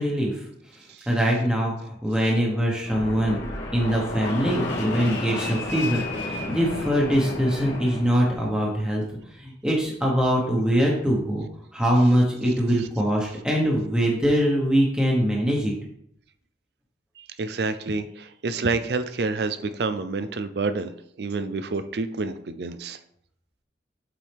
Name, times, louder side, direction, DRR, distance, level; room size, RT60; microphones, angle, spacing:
voice 1, 0.0-3.4 3.7-11.5 11.7-15.7, equal, 5° right, -3 dB, 1.2 m, -23 dB
Fixed-wing aircraft airplane, 2.8-8.5, left 2 dB, 80° left, 2.1 m, -32 dB
voice 2, 17.2-20.9 21.2-23.0, right 3 dB, 65° right, 11 dB, 0.5 m, -28 dB
7.3 x 4.7 x 3.5 m, 0.71 s
head